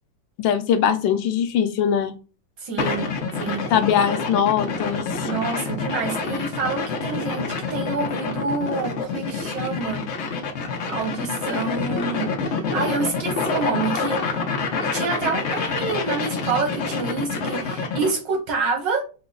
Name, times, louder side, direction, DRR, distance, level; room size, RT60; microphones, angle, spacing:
voice 1, 0.4-2.1 3.7-5.0, left 8 dB, 90° left, 1.4 m, -21 dB
voice 2, 2.6-3.7 5.2-10.1 10.9-14.5 14.8-19.0, right 4 dB, 75° right, 1.9 m, -28 dB
sound 1, 2.8-18.2, left 4 dB, 70° left, 0.6 m, -27 dB
5.7 x 2.0 x 3.7 m
omnidirectional pair, 2.0 m